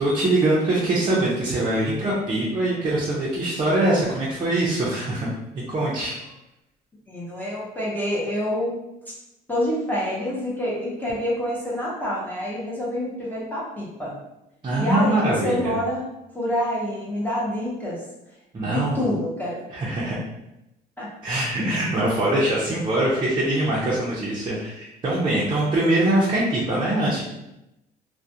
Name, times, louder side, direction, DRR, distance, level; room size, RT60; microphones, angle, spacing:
voice 1, 0.0-5.3 5.5-6.1 14.6-15.8 18.5-19.1 19.7-20.2 21.2-27.2, right 1 dB, 30° right, -7 dB, 0.5 m, -23 dB
voice 2, 7.1-8.8 9.5-14.1 14.8-16.0 16.3-18.0 18.6-19.6 21.0-21.1, left 1 dB, 10° left, -7 dB, 0.7 m, -27 dB
2.3 x 2.1 x 2.7 m, 0.90 s
cardioid pair, 110°, 17 cm